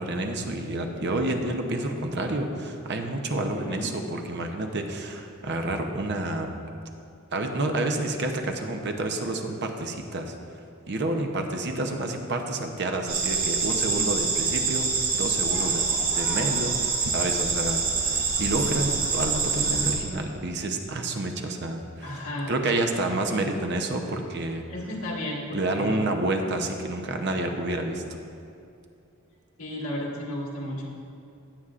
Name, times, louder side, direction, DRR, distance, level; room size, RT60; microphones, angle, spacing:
voice 1, 0.0-6.5 7.3-10.3 10.9-15.8 16.1-22.2 22.5-24.6 25.5-28.0, right 2 dB, 55° right, 4 dB, 0.8 m, -29 dB
voice 2, 3.4-3.9 22.0-22.5 24.7-26.1 29.6-30.9, left 1 dB, 80° left, -4 dB, 1.8 m, -33 dB
sound 1, 13.1-19.9, right 4 dB, 85° right, 2.3 m, -26 dB
17.5 x 7.1 x 2.5 m, 2.5 s
head